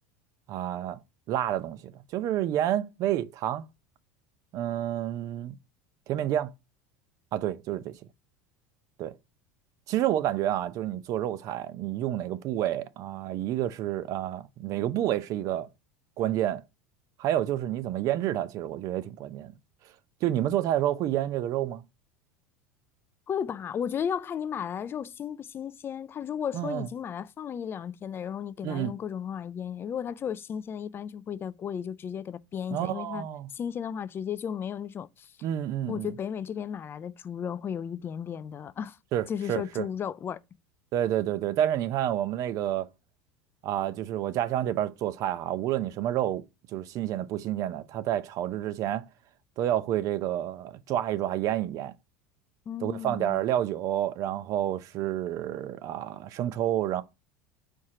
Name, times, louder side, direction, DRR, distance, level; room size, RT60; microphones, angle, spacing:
voice 1, 0.5-1.0 1.3-3.6 4.5-5.6 6.1-6.5 7.3-8.0 9.0-9.1 9.9-15.7 16.2-16.6 17.2-19.5 20.2-21.8 26.5-26.9 28.6-28.9 32.7-33.5 35.4-36.1 39.1-39.9 40.9-42.9 43.6-46.4 46.7-49.0 49.6-51.9 52.8-57.0, right 12 dB, 55° right, 0.7 m, -29 dB
voice 2, 23.3-33.3 33.5-35.3 35.9-39.0 39.3-40.4 52.7-53.4, left 8 dB, 30° left, 0.4 m, -34 dB
4.6 x 4.4 x 4.9 m
hypercardioid pair, 95°, 7 cm